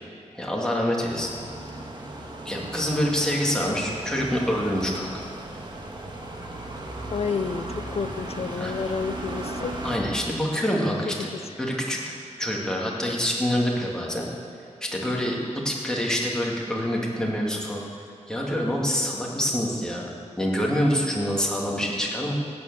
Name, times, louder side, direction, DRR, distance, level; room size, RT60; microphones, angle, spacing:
voice 1, 0.3-1.3 2.5-5.3 8.6-8.7 9.8-11.3 11.6-14.3 14.8-15.4 15.6-17.8 18.3-20.1 20.4-22.3, equal, 5° left, -3 dB, 2.3 m, -26 dB
sound 1, 1.1-10.0, right 1 dB, 40° right, 1.6 m, -36 dB
voice 2, 7.1-9.9 11.2-11.5, left 5 dB, 60° left, 10 dB, 0.6 m, -30 dB
15.5 x 9.6 x 6.9 m, 2.6 s
wide cardioid pair, 130°, 12 cm